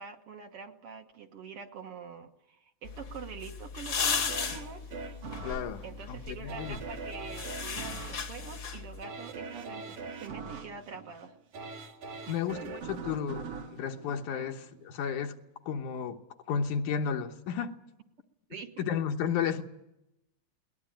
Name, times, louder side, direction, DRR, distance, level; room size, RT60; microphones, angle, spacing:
voice 1, 0.0-4.8 5.8-11.4 12.3-12.4 12.6-12.7 18.5-18.9, right 6 dB, 55° right, 5 dB, 2.0 m, -45 dB
sound 1, 2.8-9.0, left 6 dB, 45° left, 1.3 m, -36 dB
sound 2, 4.0-14.9 15.4-15.5, right 4 dB, 75° right, 3.3 m, -43 dB
voice 2, 5.4-6.8 12.3-13.5 13.7-15.4 15.7-16.2 16.5-17.8 18.8-19.6, left 7 dB, 80° left, 6 dB, 2.6 m, -33 dB
21.0 x 19.5 x 9.1 m, 0.88 s
omnidirectional pair, 3.5 m